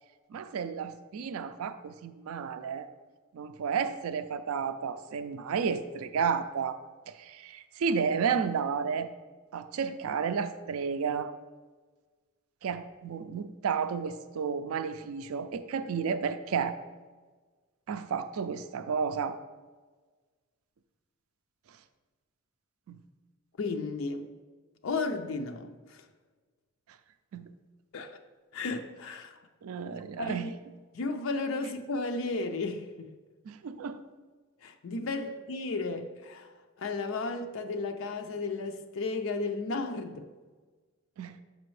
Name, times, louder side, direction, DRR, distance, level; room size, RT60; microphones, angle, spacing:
voice 1, 0.3-2.9 3.3-6.8 7.1-9.1 9.5-11.3 12.6-16.8 17.9-19.4 22.9-23.0 27.3-27.5 29.6-30.5 33.5-34.0 41.2-41.4, right 6 dB, 90° right, 10 dB, 0.4 m, -32 dB
voice 2, 23.6-24.3 24.8-26.0 27.9-28.2 28.5-29.4 30.2-30.5 30.9-33.1 34.6-36.5 36.8-40.3, left 3 dB, 65° left, 6 dB, 0.4 m, -34 dB
6.8 x 5.1 x 3.2 m, 1.4 s
head